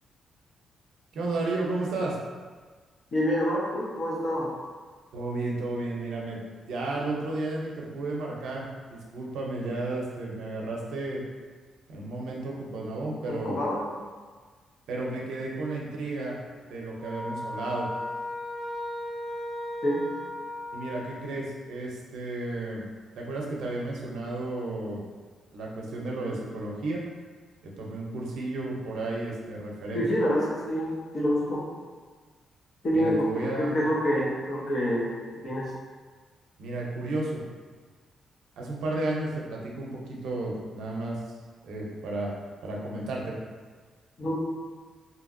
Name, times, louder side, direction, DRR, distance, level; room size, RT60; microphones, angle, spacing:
voice 1, 1.1-2.2 5.1-6.4 6.7-8.7 9.1-11.2 11.9-13.6 14.9-16.4 16.7-17.9 20.7-22.9 23.2-25.0 25.5-27.0 27.6-30.1 32.9-33.8 36.6-37.4 38.6-41.2 41.6-42.3 42.6-43.4, right 2 dB, 80° right, -2 dB, 0.6 m, -32 dB
voice 2, 3.1-4.5 13.3-13.8 19.8-20.0 29.9-31.6 32.8-35.1 35.4-35.6 44.2-44.3, equal, 40° left, -5 dB, 0.7 m, -27 dB
sound 1, 17.0-21.4, left 1 dB, 20° right, 0.8 m, -36 dB
2.8 x 2.7 x 2.5 m, 1.5 s
wide cardioid pair, 170°, 0 cm